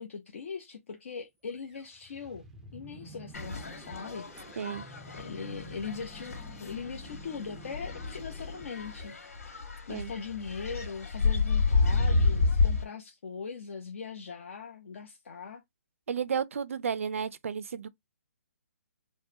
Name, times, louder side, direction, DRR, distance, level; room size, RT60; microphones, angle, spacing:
voice 1, 0.0-2.4 2.7-4.7 5.1-9.2 9.9-15.6, left 5 dB, 60° left, 0.8 m, -40 dB
sound 1, 1.5-9.6, right 1 dB, 5° right, 0.5 m, -50 dB
sound 2, 3.3-12.8, left 4 dB, 75° left, 2.0 m, -30 dB
voice 2, 16.1-17.9, right 7 dB, 65° right, 0.5 m, -32 dB
4.6 x 2.2 x 2.7 m
hypercardioid pair, 165°, 8 cm